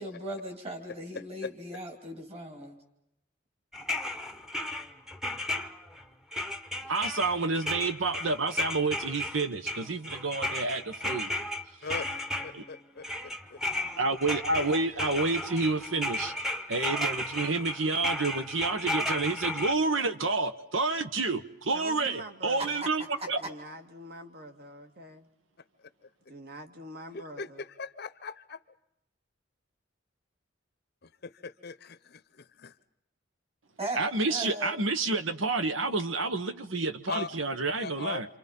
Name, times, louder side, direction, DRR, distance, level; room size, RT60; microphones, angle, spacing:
voice 1, 0.0-2.8 22.6-22.7 23.2-23.3 33.8-34.0 34.3-34.7, right 1 dB, 30° right, 5 dB, 2.9 m, -37 dB
voice 2, 1.1-1.5 11.8-12.1 12.4-13.6 27.1-28.6 31.0-32.7 37.1-37.3 37.7-38.2, left 4 dB, 55° left, 13 dB, 0.8 m, -40 dB
sound 1, 3.7-6.0 6.3-12.8 13.0-19.7, left 1 dB, ahead, 1.0 m, -34 dB
voice 3, 6.9-11.3 12.5-12.6 14.0-16.3 16.7-23.4 34.0-38.3, right 3 dB, 75° right, 10 dB, 1.3 m, -29 dB
voice 4, 21.7-22.8 23.4-25.3 26.3-27.6, right 1 dB, 50° right, 6 dB, 1.9 m, -45 dB
28.5 x 26.5 x 5.5 m, 0.82 s
head